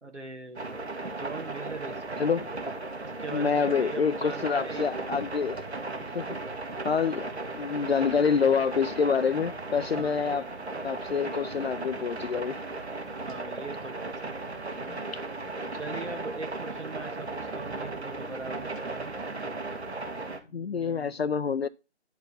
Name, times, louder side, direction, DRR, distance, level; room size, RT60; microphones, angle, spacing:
voice 1, 0.0-0.8 1.0-2.2 3.0-4.9 7.0-7.2 9.9-10.3 13.2-14.3 15.7-19.2 20.5-21.3, right 4 dB, 90° right, 1.7 m, -41 dB
sound 1, 0.6-20.4, right 2 dB, 65° right, 1.7 m, -36 dB
voice 2, 3.3-5.6 6.1-6.3 6.8-7.3 7.6-10.5 10.8-12.6 14.9-15.0 20.5-21.7, left 6 dB, 65° left, 0.5 m, -27 dB
10.5 x 4.6 x 5.3 m
figure-of-eight pair, 160°, 35 cm